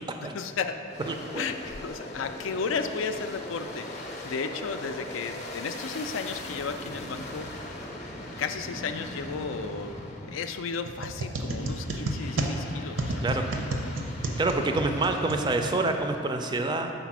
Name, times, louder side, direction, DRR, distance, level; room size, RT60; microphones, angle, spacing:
voice 1, 0.2-0.8 1.3-7.7 8.0-8.1 8.4-10.0 10.3-13.5 13.8-14.1, left 5 dB, 80° left, 8 dB, 0.4 m, -34 dB
Aircraft, 0.9-10.9 11.4-16.3, left 1 dB, 35° left, 0.6 m, -41 dB
voice 2, 1.1-1.4 13.2-13.4 14.4-16.9, right 2 dB, 25° right, 5 dB, 0.3 m, -27 dB
sound 1, 10.8-16.0, right 1 dB, 75° right, 0.6 m, -32 dB
5.0 x 4.0 x 5.9 m, 2.5 s
head